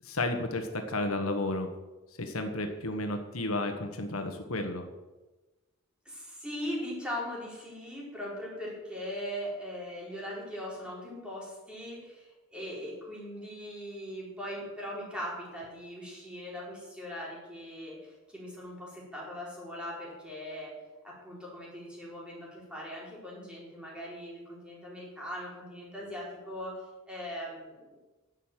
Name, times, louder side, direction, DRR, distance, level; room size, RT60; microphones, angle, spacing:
voice 1, 0.0-1.7 2.2-4.9, left 2 dB, 85° left, 6 dB, 1.4 m, -32 dB
voice 2, 6.0-20.7 21.0-26.8 27.1-28.0, equal, 5° right, -5 dB, 4.4 m, -40 dB
11.0 x 8.2 x 7.5 m, 1.1 s
head